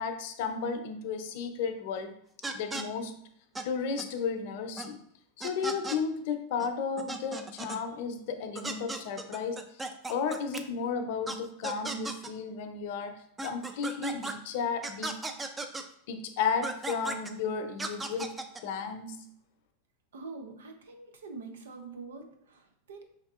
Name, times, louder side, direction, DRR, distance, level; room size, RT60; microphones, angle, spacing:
voice 1, 0.0-2.1 2.5-3.2 3.6-5.0 5.4-9.6 10.1-13.1 13.4-15.2 16.1-19.2, left 5 dB, 60° left, 8 dB, 0.6 m, -33 dB
sound 1, 2.4-2.8 3.5-3.6 4.0-4.1 4.8-4.9 5.4-6.0 6.6-6.7 7.0-7.8 8.5-10.6 11.3-11.4 11.6-12.3 13.4-14.3 14.8-15.8 16.6-17.3 17.8-18.6, right 2 dB, 15° right, 0.5 m, -36 dB
voice 2, 20.1-23.0, right 4 dB, 85° right, 5 dB, 0.8 m, -45 dB
5.1 x 3.6 x 2.4 m, 0.71 s
hypercardioid pair, 105°, 0 cm